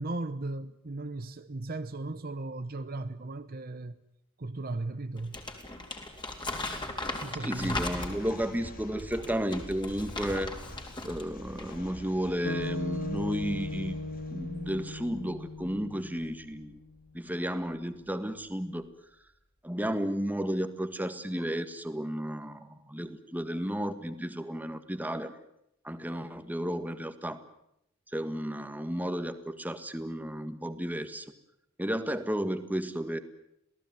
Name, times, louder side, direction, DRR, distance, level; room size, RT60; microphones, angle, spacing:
voice 1, 0.0-4.0 4.4-5.4 7.2-7.8, right 2 dB, 45° right, 0.9 m, -36 dB
Crumpling crinkling, 5.2-8.4 9.0-11.3 11.5-11.8, left 2 dB, 20° left, 3.7 m, -37 dB
voice 2, 7.4-10.5 11.0-14.0 14.3-16.8 17.1-18.9 19.6-25.3 25.8-27.4 28.1-31.3 31.8-33.2, equal, 10° right, 1.7 m, -33 dB
sound 1, 7.6-18.9, left 1 dB, 45° left, 2.6 m, -47 dB
sound 2, 12.4-16.8, left 2 dB, 75° left, 2.2 m, -38 dB
27.5 x 17.5 x 9.6 m
head